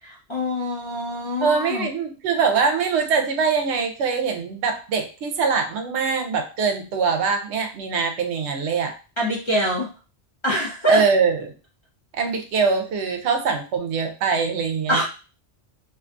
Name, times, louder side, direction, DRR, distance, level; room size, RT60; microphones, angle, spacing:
voice 1, 0.0-1.9 9.2-9.9 10.4-11.0 14.9-15.0, equal, 40° left, -4 dB, 0.4 m, -24 dB
voice 2, 1.4-8.9 10.9-11.5 12.1-15.0, right 5 dB, 75° right, 5 dB, 0.9 m, -23 dB
2.5 x 2.3 x 2.5 m, 0.34 s
omnidirectional pair, 1.2 m